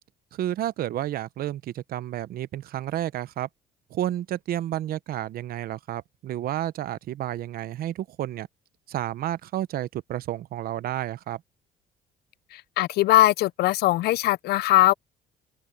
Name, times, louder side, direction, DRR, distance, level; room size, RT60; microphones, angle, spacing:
voice 1, 0.3-3.5 3.9-8.5 8.9-11.4, right 12 dB, 60° right, 0.8 m, -31 dB
voice 2, 12.5-14.9, left 16 dB, 75° left, 0.6 m, -20 dB
cardioid pair, 110°, 17 cm